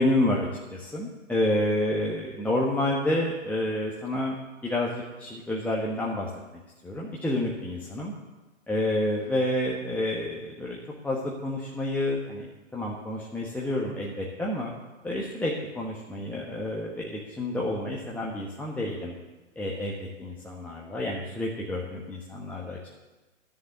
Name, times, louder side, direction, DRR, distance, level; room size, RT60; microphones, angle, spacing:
voice 1, 0.0-4.3 4.6-6.3 6.8-8.1 8.7-10.8 11.0-14.7 15.0-19.1 19.6-22.8, left 1 dB, 5° left, -4 dB, 1.2 m, -29 dB
11.0 x 7.0 x 9.0 m, 1.2 s
hypercardioid pair, 125°, 38 cm